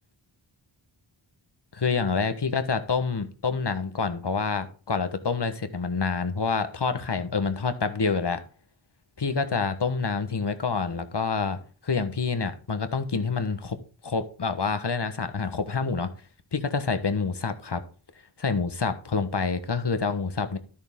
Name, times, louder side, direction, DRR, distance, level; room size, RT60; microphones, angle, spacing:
voice 1, 1.7-8.4 9.2-13.8 14.0-16.1 16.5-17.8 18.4-20.6, left 4 dB, 55° left, 9 dB, 1.4 m, -27 dB
12.5 x 6.9 x 3.7 m, 0.39 s
wide cardioid pair, 60°, 48 cm